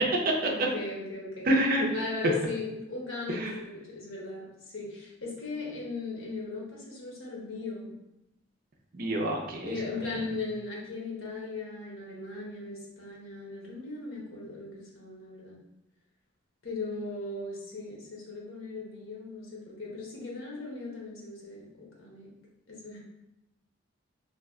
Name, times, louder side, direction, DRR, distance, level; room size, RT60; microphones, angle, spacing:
voice 1, 0.4-1.5 1.8-7.9 9.6-15.6 16.6-22.3 22.7-23.0, left 3 dB, 85° left, -3 dB, 0.9 m, -38 dB
voice 2, 1.4-1.9 3.3-3.6 8.9-10.3, right 1 dB, 45° right, 1 dB, 0.5 m, -28 dB
2.8 x 2.1 x 3.5 m, 0.90 s
head